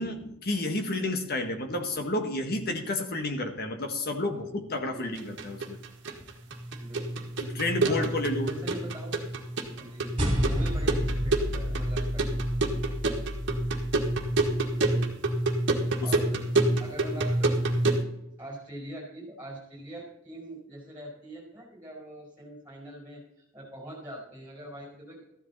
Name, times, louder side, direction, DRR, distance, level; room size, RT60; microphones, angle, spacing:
voice 1, 0.0-5.8 7.4-8.5 16.0-16.1, left 2 dB, 45° left, 5 dB, 1.7 m, -31 dB
voice 2, 4.9-5.5 6.8-9.2 9.8-12.5 12.9-13.0 14.8-15.1 16.0-16.4 16.8-17.5 17.8-18.0 18.4-23.2 23.5-25.2, right 1 dB, 10° right, -3 dB, 4.7 m, -43 dB
sound 1, 5.2-18.0, right 2 dB, 55° right, 1.7 m, -28 dB
sound 2, 10.2-14.8, equal, 25° right, 3.0 m, -31 dB
14.0 x 11.0 x 4.2 m, 0.83 s
head